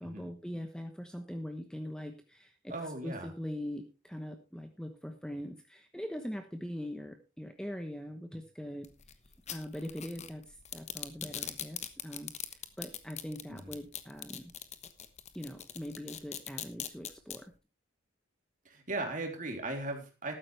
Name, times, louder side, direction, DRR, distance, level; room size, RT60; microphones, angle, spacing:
voice 1, 0.0-8.9 9.5-14.5 15.3-17.5, equal, 5° left, 6 dB, 1.0 m, -42 dB
voice 2, 2.7-3.3 13.5-13.7 18.6-20.3, right 2 dB, 40° right, 3 dB, 3.3 m, -38 dB
sound 1, 8.8-17.4, left 9 dB, 35° left, 1.1 m, -41 dB
14.0 x 12.5 x 3.3 m, 0.29 s
head